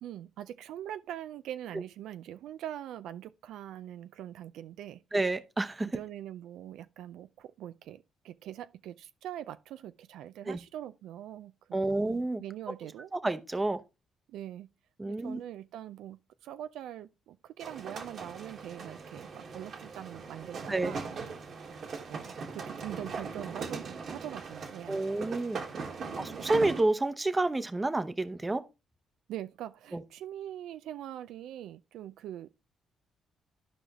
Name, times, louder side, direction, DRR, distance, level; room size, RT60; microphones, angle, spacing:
voice 1, 0.0-5.0 5.9-12.1 12.4-13.1 14.3-14.7 15.0-21.1 22.1-25.1 26.2-26.3 29.3-32.6, right 11 dB, 85° right, 0.4 m, -43 dB
voice 2, 5.1-5.9 10.5-10.6 11.7-12.4 13.1-13.8 15.0-15.4 20.7-21.0 24.9-25.6 26.2-28.6 29.9-30.0, right 2 dB, 20° right, 0.8 m, -29 dB
sound 1, 17.6-26.8, right 5 dB, 60° right, 1.6 m, -40 dB
13.5 x 5.0 x 3.0 m
cardioid pair, 90°, 0 cm